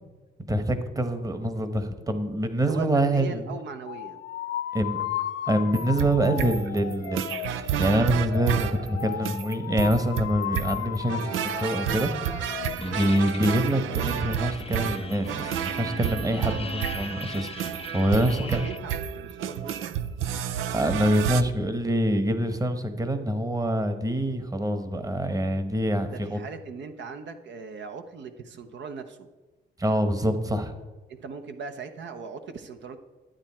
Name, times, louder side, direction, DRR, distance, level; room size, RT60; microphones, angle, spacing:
voice 1, 0.5-3.5 4.7-5.0 5.5-7.2 7.6-12.1 12.8-18.7 20.7-26.4 29.8-30.7, right 1 dB, 15° right, 9 dB, 1.1 m, -25 dB
voice 2, 2.7-4.2 13.0-13.2 18.2-19.8 26.1-29.3 31.1-33.0, right 5 dB, 65° right, 7 dB, 0.9 m, -39 dB
sound 1, 3.9-12.7, left 12 dB, 75° left, 0.5 m, -35 dB
sound 2, 5.7-21.4, right 9 dB, 85° right, 0.6 m, -31 dB
sound 3, 12.8-18.8, left 6 dB, 30° left, 0.6 m, -40 dB
11.5 x 8.9 x 4.3 m, 1.2 s
cardioid pair, 90°, 20 cm